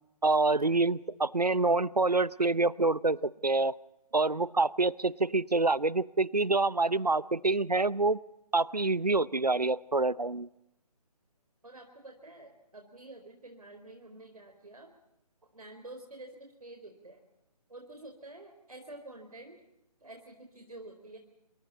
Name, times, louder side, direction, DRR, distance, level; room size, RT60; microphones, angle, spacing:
voice 1, 0.2-3.7 4.1-8.2 8.5-10.5, right 3 dB, 85° right, 21 dB, 0.8 m, -26 dB
voice 2, 11.6-14.9 15.5-17.2 17.7-19.6 20.0-21.2, right 2 dB, 70° right, 3 dB, 4.3 m, -49 dB
27.5 x 25.5 x 4.2 m, 0.85 s
figure-of-eight pair, 145°, 20 cm